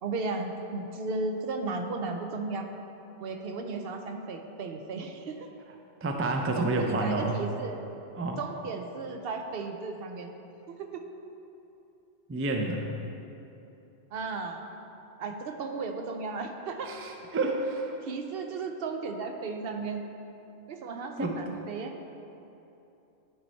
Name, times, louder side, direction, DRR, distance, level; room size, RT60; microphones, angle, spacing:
voice 1, 0.0-2.7 3.2-5.5 6.6-7.8 8.4-10.3 10.8-11.0 14.1-14.7 15.2-16.9 18.0-20.0 20.7-21.9, right 3 dB, 70° right, 4 dB, 0.8 m, -35 dB
voice 2, 6.0-7.4 8.2-8.4 12.3-12.9 16.9-18.0 21.2-21.4, right 2 dB, 20° right, 2 dB, 0.3 m, -29 dB
10.0 x 4.1 x 4.4 m, 2.9 s
omnidirectional pair, 1.1 m